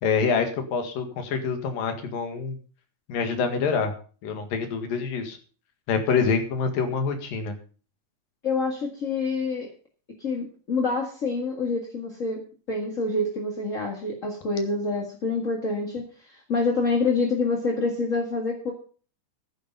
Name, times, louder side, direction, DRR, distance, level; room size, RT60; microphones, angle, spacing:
voice 1, 0.0-2.6 3.1-3.9 4.2-5.4 5.9-7.6, left 5 dB, 85° left, 7 dB, 3.6 m, -26 dB
voice 2, 8.4-9.7 10.2-12.4 12.7-18.7, left 3 dB, 30° left, 1 dB, 1.7 m, -27 dB
12.0 x 10.5 x 5.4 m, 0.39 s
omnidirectional pair, 3.8 m